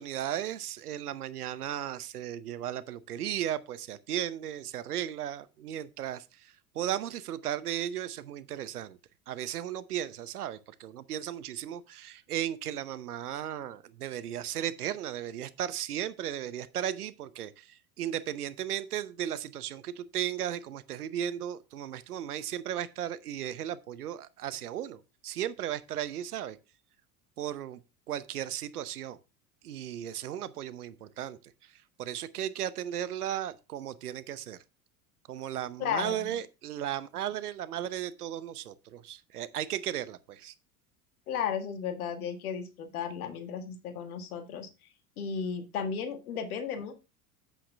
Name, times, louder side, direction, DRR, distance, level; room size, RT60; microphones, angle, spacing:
voice 1, 0.0-9.0 9.3-26.6 27.4-27.8 28.1-29.2 29.6-31.4 32.0-34.6 35.3-40.5, right 11 dB, 85° right, 0.9 m, -35 dB
voice 2, 35.8-36.4 41.3-44.7 45.2-47.0, left 7 dB, 75° left, 1.9 m, -34 dB
8.5 x 7.9 x 3.4 m
hypercardioid pair, 80°, 44 cm